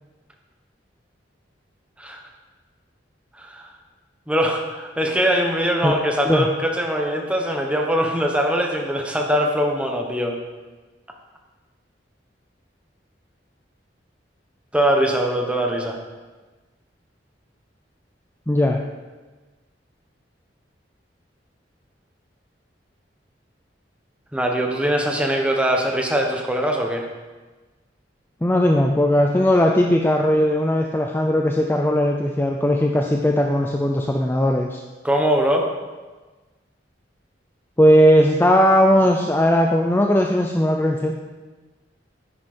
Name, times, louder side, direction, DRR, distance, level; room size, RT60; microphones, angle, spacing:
voice 1, 3.4-3.7 4.3-10.4 14.7-16.0 24.3-27.1 35.0-35.7, equal, 5° right, 1 dB, 1.3 m, -22 dB
voice 2, 18.5-18.8 28.4-34.8 37.8-41.1, equal, 10° left, 2 dB, 0.6 m, -18 dB
10.0 x 10.0 x 4.4 m, 1.3 s
head